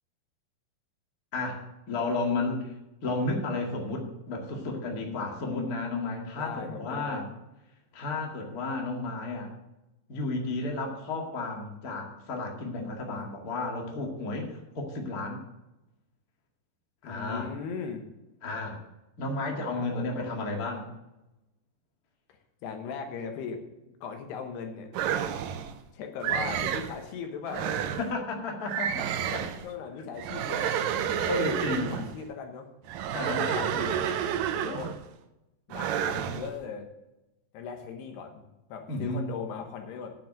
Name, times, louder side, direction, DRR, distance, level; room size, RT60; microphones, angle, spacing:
voice 1, 1.3-2.7 3.0-7.3 7.9-9.5 10.1-15.4 17.0-17.5 18.4-18.8 19.2-20.9 28.0-29.5 31.0-32.1 33.1-33.7 38.9-39.3, left 2 dB, 40° left, 1 dB, 1.4 m, -32 dB
voice 2, 6.3-7.2 12.8-13.3 17.0-18.1 19.6-20.4 22.6-24.9 25.9-27.9 29.6-30.7 31.1-32.7 33.1-34.0 34.5-35.0 35.7-36.9 37.5-38.4 38.7-40.2, left 6 dB, 75° left, 5 dB, 3.2 m, -39 dB
sound 1, 24.9-25.7 26.2-27.0 27.5-28.1 28.7-29.7 30.2-32.1 32.9-35.1 35.7-36.5, right 9 dB, 80° right, 2.0 m, -30 dB
9.5 x 7.5 x 7.7 m, 0.95 s
omnidirectional pair, 5.0 m